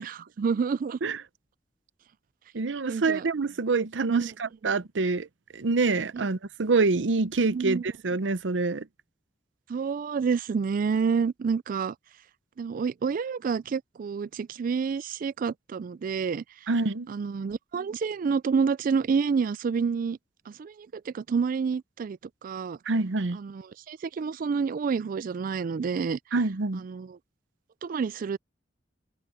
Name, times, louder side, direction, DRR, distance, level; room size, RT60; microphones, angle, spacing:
voice 1, 0.4-1.0 2.9-3.2 4.1-4.3 6.1-6.3 7.5-7.8 9.7-11.9 12.6-16.4 17.1-20.2 20.5-22.8 23.3-23.6 23.9-26.2 26.8-27.2 27.8-28.4, right 5 dB, 50° right, 0.3 m, -28 dB
voice 2, 2.5-5.3 5.5-8.9 16.7-17.1 22.9-23.4 26.3-26.8, right 3 dB, 85° right, 0.7 m, -26 dB
open air
head